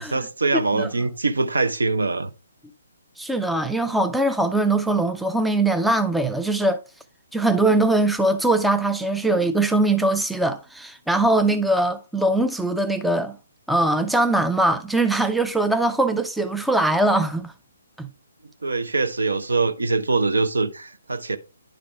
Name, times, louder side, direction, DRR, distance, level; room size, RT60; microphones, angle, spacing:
voice 1, 0.0-2.3 18.6-21.4, right 3 dB, 70° right, 0.8 m, -23 dB
voice 2, 3.2-6.8 7.3-13.4 13.7-17.5 18.0-18.1, right 2 dB, ahead, 0.4 m, -21 dB
10.5 x 5.1 x 3.3 m
figure-of-eight pair, 135°, 0 cm